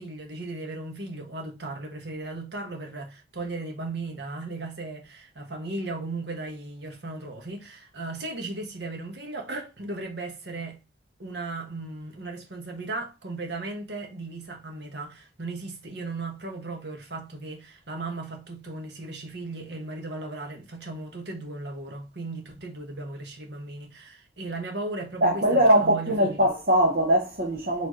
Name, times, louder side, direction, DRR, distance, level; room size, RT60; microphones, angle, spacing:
voice 1, 0.0-10.8 11.2-26.4, right 2 dB, 75° right, 1.3 m, -36 dB
voice 2, 25.2-27.9, right 1 dB, 55° right, 0.9 m, -21 dB
4.4 x 3.4 x 3.0 m
head